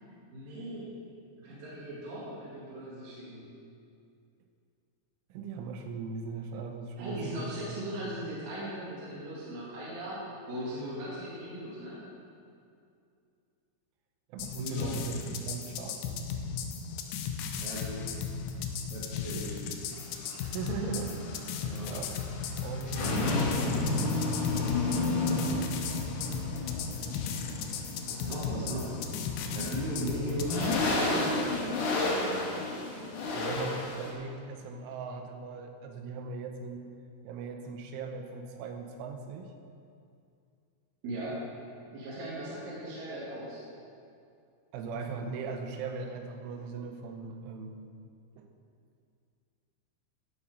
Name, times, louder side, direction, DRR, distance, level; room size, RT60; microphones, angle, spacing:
voice 1, 0.3-0.9 1.4-3.5 7.0-10.2 10.5-12.0 14.6-14.9 17.6-18.0 18.9-19.6 20.9-21.1 21.7-22.0 23.0-24.2 25.0-25.4 28.1-28.9 29.5-31.4 31.9-32.6 41.0-41.4 41.9-43.6, right 1 dB, 55° right, -8 dB, 3.3 m, -39 dB
voice 2, 5.3-8.2 14.3-16.3 20.4-21.2 21.8-22.3 22.6-23.4 28.5-28.8 33.3-36.9 37.3-39.5 44.7-47.9 48.4-48.5, right 4 dB, 80° right, 4 dB, 3.4 m, -39 dB
sound 1, 14.4-30.8, left 6 dB, 85° left, 2.9 m, -36 dB
sound 2, 19.9-34.1, left 2 dB, 65° left, 2.1 m, -32 dB
15.5 x 7.3 x 5.0 m, 2.4 s
omnidirectional pair, 5.6 m